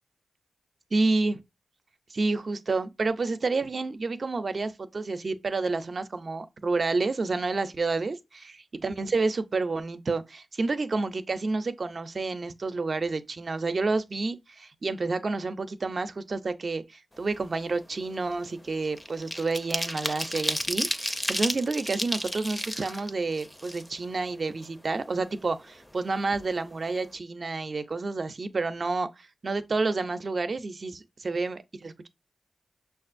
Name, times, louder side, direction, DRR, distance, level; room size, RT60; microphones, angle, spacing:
voice 1, 0.9-1.4 2.1-8.5 8.8-29.1 29.4-32.1, right 3 dB, 50° right, 0.5 m, -29 dB
sound 1, 17.2-17.5 17.8-24.3 24.6-24.7 25.0-26.0 26.3-26.5 26.8-27.1, equal, 15° left, 0.5 m, -33 dB
5.9 x 2.4 x 2.5 m
cardioid pair, 60°, 0 cm